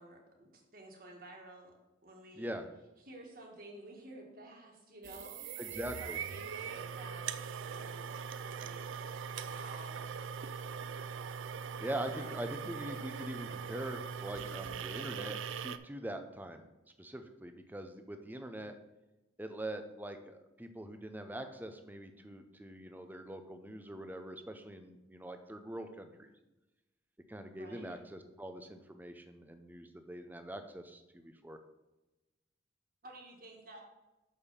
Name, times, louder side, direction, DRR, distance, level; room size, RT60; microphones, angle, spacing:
voice 1, 0.0-1.7 2.0-2.6 3.0-7.3 7.7-9.1 9.4-10.4 12.1-12.4 27.5-28.0 33.0-33.8, right 1 dB, 45° right, 0 dB, 1.6 m, -52 dB
voice 2, 2.3-2.7 5.6-6.2 11.8-16.7 17.0-18.8 19.4-26.3 27.3-31.6, right 1 dB, 10° right, 7 dB, 0.5 m, -43 dB
sound 1, 5.0-15.8, right 7 dB, 90° right, 0.4 m, -41 dB
6.5 x 5.2 x 5.6 m, 1.0 s
head